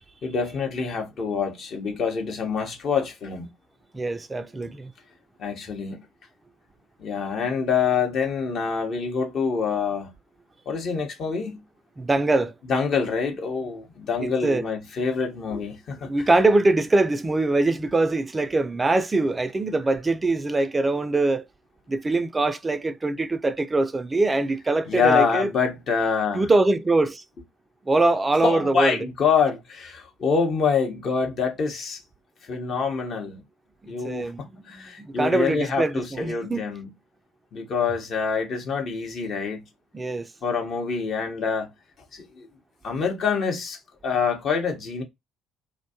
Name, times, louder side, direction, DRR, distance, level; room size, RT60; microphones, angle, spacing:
voice 1, 0.2-3.5 5.4-6.0 7.0-10.1 10.7-11.6 12.7-16.1 24.9-26.5 28.4-32.0 32.5-33.4 33.9-36.9 37.5-39.6 40.4-41.7 42.1-42.5 42.8-45.0, left 5 dB, 50° left, 0.8 m, -26 dB
voice 2, 3.9-4.9 12.0-12.5 14.2-14.6 16.0-21.5 21.9-25.5 26.3-27.2 27.9-29.0 33.8-36.7 39.9-40.3, right 2 dB, 20° right, 0.3 m, -23 dB
2.5 x 2.2 x 2.7 m
figure-of-eight pair, 50°, 0 cm